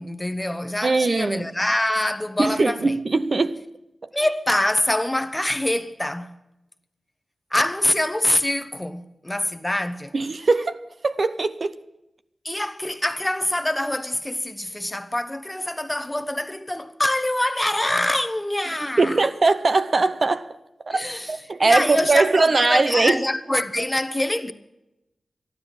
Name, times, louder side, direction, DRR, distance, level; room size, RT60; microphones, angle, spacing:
voice 1, 0.0-3.0 4.1-6.3 7.5-10.1 12.4-19.2 20.9-24.5, left 1 dB, 15° left, 1.0 m, -25 dB
voice 2, 0.8-1.5 2.4-3.6 10.1-11.8 19.0-20.6 20.9-23.2, right 3 dB, 55° right, 0.6 m, -21 dB
12.5 x 11.5 x 7.3 m
cardioid pair, 50°, 0 cm